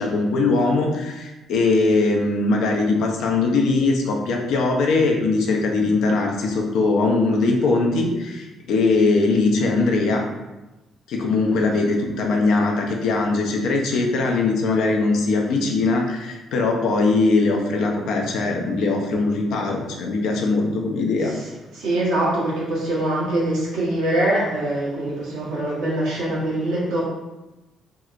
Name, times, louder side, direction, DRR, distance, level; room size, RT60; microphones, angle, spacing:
voice 1, 0.0-10.2 11.1-21.3, left 3 dB, 65° left, 1 dB, 0.4 m, -21 dB
voice 2, 21.7-27.0, right 1 dB, 70° right, -6 dB, 0.8 m, -23 dB
2.7 x 2.0 x 2.3 m, 1.1 s
hypercardioid pair, 45°, 0 cm